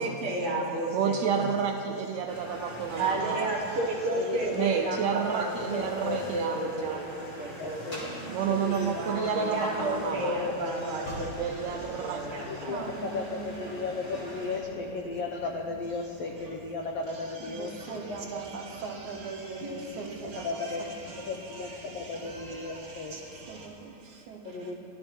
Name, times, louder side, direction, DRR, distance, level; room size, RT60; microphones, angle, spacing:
voice 1, 0.0-1.5 3.0-8.1 9.0-11.3 12.0-12.7 18.4-18.5 20.3-20.8, right 1 dB, 40° right, -4 dB, 3.0 m, -32 dB
voice 2, 0.9-3.5 4.5-7.1 8.3-10.4 11.4-12.2, right 7 dB, 85° right, 3 dB, 1.5 m, -30 dB
sound 1, 2.3-14.6, equal, 15° left, 3.3 m, -41 dB
voice 3, 4.1-4.9 7.6-8.0 8.5-8.9 10.2-10.4 11.6-11.8 12.5-17.8 20.4-20.8 21.3-23.2 24.4-24.7, left 3 dB, 80° left, 2 dB, 1.4 m, -35 dB
Engine, 9.5-23.7, left 1 dB, 45° left, 3.8 m, -48 dB
voice 4, 12.7-13.6 17.4-21.3 23.4-24.7, right 5 dB, 65° right, 1 dB, 2.4 m, -40 dB
22.5 x 14.5 x 4.4 m, 2.7 s
omnidirectional pair, 4.2 m